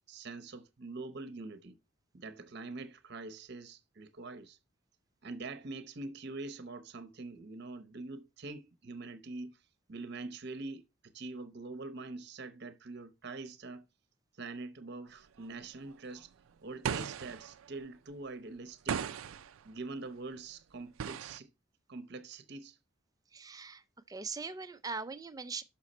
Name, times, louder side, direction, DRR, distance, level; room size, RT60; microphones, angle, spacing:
voice 1, 0.1-1.8 2.1-4.6 5.2-9.6 9.9-13.8 14.4-16.3 16.6-19.0 19.6-21.5 21.9-22.8, right 3 dB, 55° right, 0.8 m, -44 dB
sound 1, 15.4-15.5 15.9-16.0 16.2-16.3 16.8-17.8 18.9-19.6 21.0-21.4, right 7 dB, 90° right, 0.4 m, -37 dB
voice 2, 23.3-25.6, right 4 dB, 20° right, 0.5 m, -41 dB
6.3 x 5.9 x 4.2 m
head